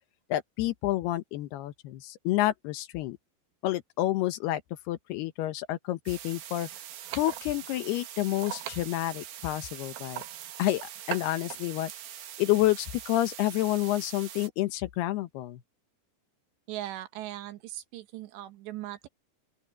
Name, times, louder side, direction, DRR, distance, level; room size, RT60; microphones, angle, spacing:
voice 1, 0.3-3.2 3.6-4.6 4.9-6.7 7.1-10.2 10.6-10.8 11.1-11.9 12.4-15.6, left 15 dB, 75° left, 2.9 m, -29 dB
sound 1, 6.1-14.5, right 11 dB, 65° right, 3.2 m, -41 dB
voice 2, 16.7-19.1, right 14 dB, 85° right, 3.7 m, -39 dB
open air
omnidirectional pair, 4.9 m